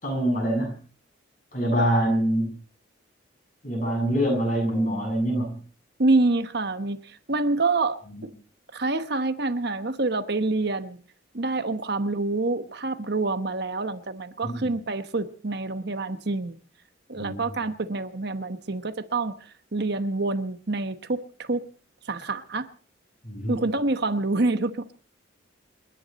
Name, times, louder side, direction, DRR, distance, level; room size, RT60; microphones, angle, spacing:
voice 1, 0.0-0.7 1.5-2.5 3.6-5.6 8.1-8.2 14.4-14.7 17.2-17.6 23.2-23.6, right 1 dB, 40° left, 7.1 m, -25 dB
voice 2, 6.0-8.0 8.7-11.0 11.3-16.6 17.1-21.6 22.1-22.7 23.5-24.9, right 3 dB, 55° right, 1.1 m, -27 dB
29.0 x 10.5 x 4.2 m
head